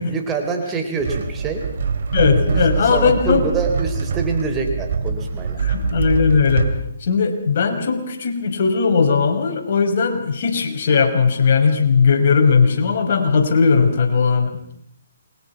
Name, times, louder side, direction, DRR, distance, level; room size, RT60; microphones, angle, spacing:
voice 1, 0.1-1.7 2.5-5.6, right 4 dB, 15° right, 3 dB, 3.9 m, -26 dB
sound 1, 1.0-6.8, right 5 dB, 60° right, 3.3 m, -23 dB
voice 2, 2.1-3.4 5.6-6.7 7.0-14.5, left 5 dB, 55° left, 3 dB, 5.6 m, -18 dB
29.0 x 23.0 x 6.0 m, 0.69 s
hypercardioid pair, 145°, 0 cm